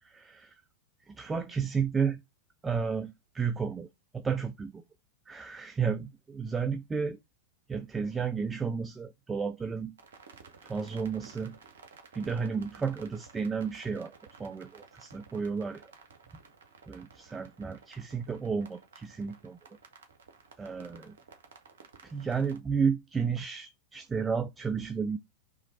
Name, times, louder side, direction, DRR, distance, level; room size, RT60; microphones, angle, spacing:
voice 1, 0.0-0.6 1.1-2.2 2.6-3.9 4.1-4.8 5.3-7.2 7.7-9.9 10.6-11.6 12.1-14.1 14.4-15.8 16.9-19.6 20.6-21.2 22.0-25.2, right 6 dB, 15° right, 0.3 m, -32 dB
sound 1, 10.0-22.6, right 5 dB, 65° right, 1.1 m, -55 dB
3.6 x 3.0 x 4.3 m
figure-of-eight pair, 90°, 0 cm